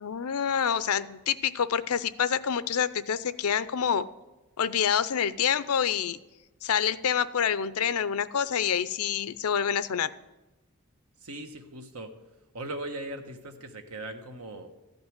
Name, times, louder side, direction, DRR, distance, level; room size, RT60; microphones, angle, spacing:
voice 1, 0.0-4.1 4.6-6.2 6.6-10.1, left 8 dB, 80° left, 15 dB, 0.6 m, -27 dB
voice 2, 11.2-12.1 12.5-14.7, right 1 dB, 85° right, 5 dB, 1.4 m, -39 dB
14.5 x 5.3 x 9.4 m, 1.1 s
head